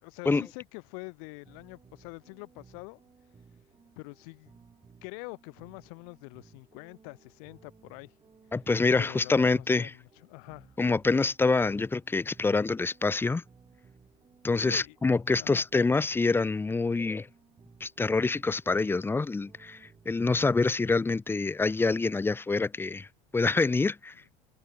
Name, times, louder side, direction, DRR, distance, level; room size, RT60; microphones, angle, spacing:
voice 1, 0.0-3.0 4.0-4.6 5.0-8.2 9.0-10.8 14.6-15.0 15.4-15.6, left 37 dB, 75° left, 4.4 m, -45 dB
sound 1, 1.2-20.4, right 5 dB, 25° right, 5.9 m, -59 dB
voice 2, 8.5-9.9 10.8-13.4 14.4-17.3 17.8-23.1 23.3-24.1, left 3 dB, 10° left, 0.5 m, -26 dB
supercardioid pair, 105°, 19 cm